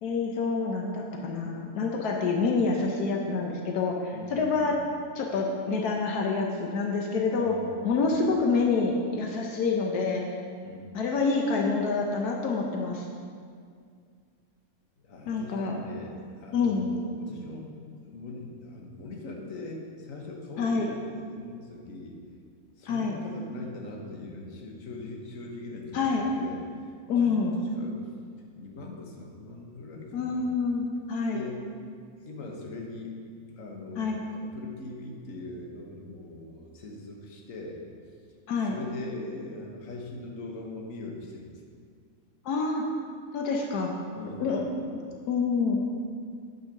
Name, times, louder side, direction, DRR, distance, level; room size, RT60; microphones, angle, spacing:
voice 1, 0.0-4.7 5.1-7.6 7.8-10.2 10.9-13.1 15.3-15.8 16.5-16.9 20.6-20.9 22.9-23.1 25.9-26.2 27.1-27.6 30.1-31.4 34.0-34.2 38.5-38.8 42.4-42.8 43.3-44.0 44.4-44.6 45.3-45.8, left 4 dB, 85° left, 0 dB, 1.4 m, -27 dB
voice 2, 4.1-4.8 7.3-8.3 10.6-10.9 15.0-17.7 18.0-22.2 22.8-28.0 28.6-30.5 31.3-31.7 32.2-33.1 33.5-37.8 38.7-41.5 44.1-44.9, left 2 dB, 60° left, 0 dB, 1.6 m, -41 dB
9.1 x 5.7 x 6.4 m, 2.2 s
omnidirectional pair, 1.6 m